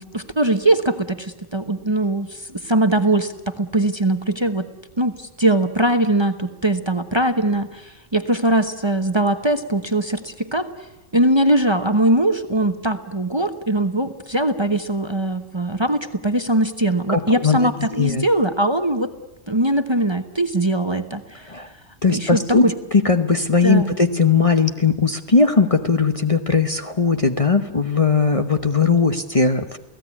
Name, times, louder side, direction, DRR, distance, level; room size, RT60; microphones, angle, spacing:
voice 1, 0.0-4.7 5.0-10.7 11.1-19.1 19.5-21.5 22.1-22.7 23.6-24.0, right 1 dB, 25° right, 8 dB, 1.1 m, -21 dB
voice 2, 17.1-18.2 21.5-21.7 22.0-29.8, left 4 dB, 30° left, 7 dB, 1.1 m, -19 dB
29.0 x 17.0 x 9.8 m, 1.0 s
omnidirectional pair, 1.3 m